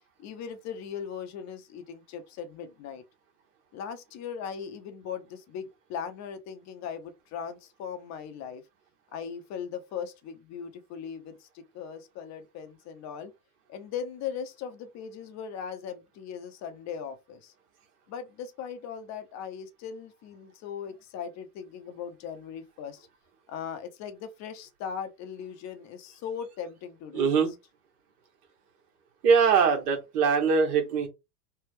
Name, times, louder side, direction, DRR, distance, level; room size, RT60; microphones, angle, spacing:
voice 1, 0.2-3.0 3.7-8.6 9.1-13.3 13.7-17.5 18.1-23.1 23.5-27.4, left 7 dB, 35° left, 0.6 m, -39 dB
voice 2, 27.1-27.5 29.2-31.1, right 6 dB, 70° right, 1.5 m, -22 dB
3.3 x 2.2 x 3.2 m
hypercardioid pair, 110°, 48 cm